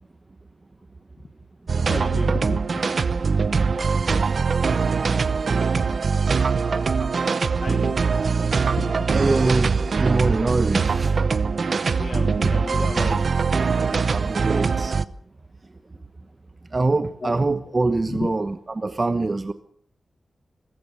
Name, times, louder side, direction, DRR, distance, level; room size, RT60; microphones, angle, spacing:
sound 1, 1.7-15.0, right 5 dB, 60° right, 0.8 m, -22 dB
voice 1, 1.9-2.6 3.0-3.1 7.6-8.0 8.8-9.2 12.0-13.3 17.2-17.4 18.1-18.3, left 4 dB, 50° left, 7 dB, 1.5 m, -33 dB
voice 2, 9.1-9.7 10.0-11.2 14.1-14.9 16.7-19.5, right 3 dB, 30° right, 10 dB, 1.0 m, -23 dB
26.0 x 15.5 x 6.9 m, 0.63 s
wide cardioid pair, 110°, 0 cm